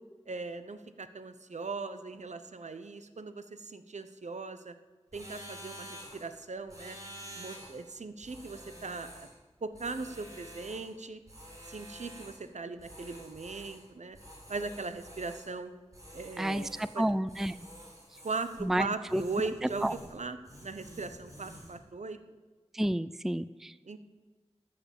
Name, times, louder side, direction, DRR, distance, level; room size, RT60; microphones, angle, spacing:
voice 1, 0.3-4.7 5.1-7.0 7.3-9.3 9.6-11.2 11.7-14.2 14.5-15.7 16.1-16.7 16.9-17.0 18.2-20.4 20.6-22.2 23.9-24.0, right 3 dB, 80° right, 10 dB, 0.9 m, -39 dB
sound 1, 5.1-6.3 6.7-7.8 8.2-9.4 9.7-10.9 11.3-12.5 12.8-13.9 14.1-15.5 15.9-17.0 17.3-18.7 19.1-20.2 20.4-21.8, equal, 30° right, 4.2 m, -49 dB
voice 2, 16.4-17.6 18.6-19.2 19.6-19.9 22.7-23.7, right 1 dB, 5° right, 15 dB, 0.4 m, -30 dB
13.5 x 6.9 x 7.1 m, 1.3 s
wide cardioid pair, 45°, 12 cm